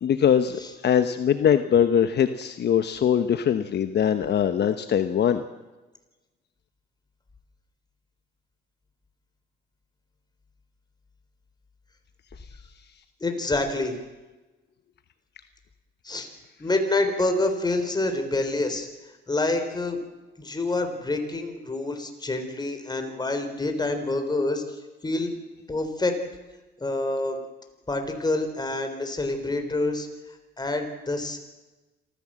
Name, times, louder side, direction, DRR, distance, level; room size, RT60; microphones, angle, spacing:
voice 1, 0.0-5.4, left 8 dB, 60° left, 9 dB, 1.0 m, -22 dB
voice 2, 13.2-14.0 16.0-16.3 16.6-20.0 20.4-25.3 25.7-26.2 26.8-27.4 27.9-31.4, left 2 dB, 20° left, 6 dB, 3.9 m, -27 dB
26.5 x 15.0 x 7.6 m, 1.2 s
cardioid pair, 90°, 20 cm